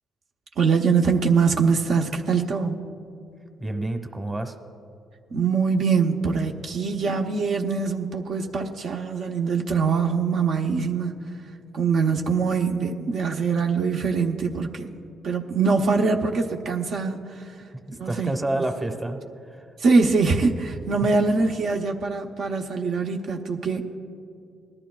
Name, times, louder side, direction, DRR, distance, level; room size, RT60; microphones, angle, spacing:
voice 1, 0.6-2.8 5.3-11.2 11.7-14.9 15.2-17.6 18.0-18.6 19.8-23.8, right 5 dB, 65° right, 3 dB, 0.7 m, -23 dB
voice 2, 3.6-4.5 17.9-19.2, right 1 dB, 15° right, 6 dB, 1.0 m, -28 dB
19.5 x 12.0 x 2.3 m, 2.5 s
cardioid pair, 90°, 0 cm